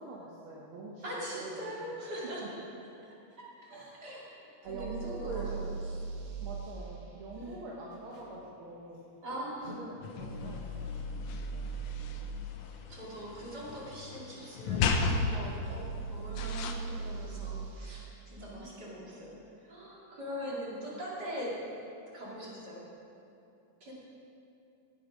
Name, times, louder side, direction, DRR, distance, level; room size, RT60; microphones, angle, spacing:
voice 1, 0.0-1.0 1.4-1.5 1.8-1.9 3.7-4.0 4.6-5.8 6.4-9.0 9.8-12.2 18.4-19.0 20.4-21.0, right 2 dB, 55° right, -4 dB, 1.6 m, -45 dB
voice 2, 1.0-2.6 3.6-4.3 4.7-6.0 7.4-7.6 9.2-9.8 12.9-19.4 19.6-21.6 22.1-22.8 23.8-23.9, equal, 35° right, -6 dB, 2.7 m, -42 dB
sound 1, 4.7-6.7 10.2-12.3 15.7-17.8, right 4 dB, 85° right, 2.7 m, -39 dB
Packing tape duct tape, 6.8-6.9 7.9-8.3 9.3-9.8 10.7-11.1 12.6-12.8 13.1-13.3 13.6-14.0, left 1 dB, 15° right, 3.0 m, -54 dB
sound 2, 10.0-16.7, left 4 dB, 70° left, 1.6 m, -35 dB
16.0 x 8.0 x 5.1 m, 2.7 s
omnidirectional pair, 3.4 m